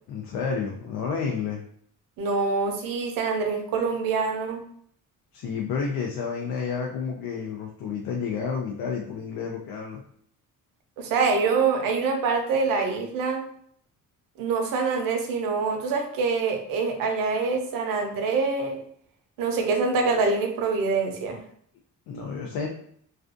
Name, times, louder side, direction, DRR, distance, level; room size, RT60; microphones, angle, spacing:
voice 1, 0.1-1.6 5.3-10.0 22.1-22.7, left 6 dB, 90° left, 1 dB, 0.5 m, -30 dB
voice 2, 2.2-4.6 11.0-13.4 14.4-18.8 19.4-21.4, right 4 dB, 75° right, 4 dB, 0.6 m, -25 dB
2.4 x 2.3 x 2.5 m, 0.64 s
cardioid pair, 180°, 34 cm